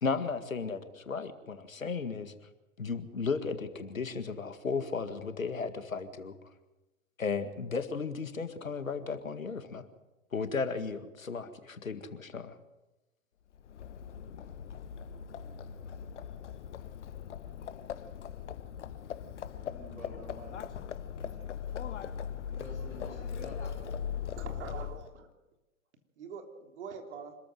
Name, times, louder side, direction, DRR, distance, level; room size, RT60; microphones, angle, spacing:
voice 1, 0.0-2.3 2.8-6.4 7.2-9.9 10.3-12.6, left 5 dB, 80° left, 10 dB, 2.0 m, -35 dB
Livestock farm animals working animals, 13.5-25.2, left 8 dB, 60° left, 1.2 m, -40 dB
voice 2, 19.5-23.9 24.3-24.5, equal, 90° right, 1 dB, 7.5 m, -51 dB
voice 3, 24.3-25.3 26.2-27.4, right 6 dB, 55° right, 4 dB, 3.6 m, -44 dB
26.0 x 14.0 x 7.8 m, 1.0 s
figure-of-eight pair, 110°, 40 cm